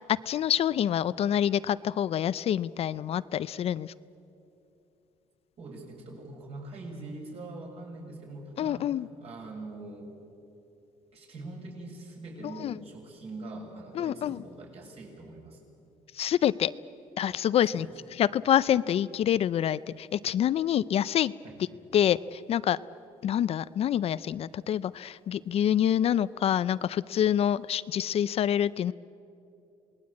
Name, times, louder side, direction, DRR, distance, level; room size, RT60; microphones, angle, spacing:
voice 1, 0.3-3.9 8.6-9.1 12.6-12.7 14.0-14.4 16.1-16.7 17.2-17.9 18.2-21.3 21.9-22.8 23.2-28.9, left 10 dB, 50° left, 16 dB, 0.5 m, -26 dB
voice 2, 5.6-8.8 9.2-10.1 11.1-15.6 17.7-17.9 21.4-21.6, right 2 dB, 50° right, -1 dB, 7.1 m, -43 dB
27.0 x 19.5 x 8.5 m, 2.8 s
cardioid pair, 115°, 13 cm